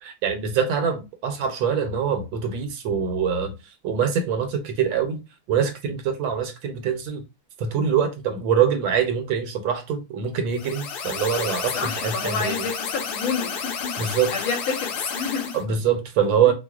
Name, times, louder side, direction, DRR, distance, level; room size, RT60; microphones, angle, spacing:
voice 1, 0.0-3.5 3.8-5.2 5.5-7.2 7.6-12.6 14.0-14.3 15.5-16.5, right 7 dB, 75° right, 1.4 m, -24 dB
sound 1, 10.5-15.6, left 6 dB, 65° left, 1.1 m, -31 dB
voice 2, 11.7-14.0 14.3-15.6, left 5 dB, 80° left, 1.7 m, -29 dB
4.6 x 2.1 x 2.3 m
omnidirectional pair, 2.2 m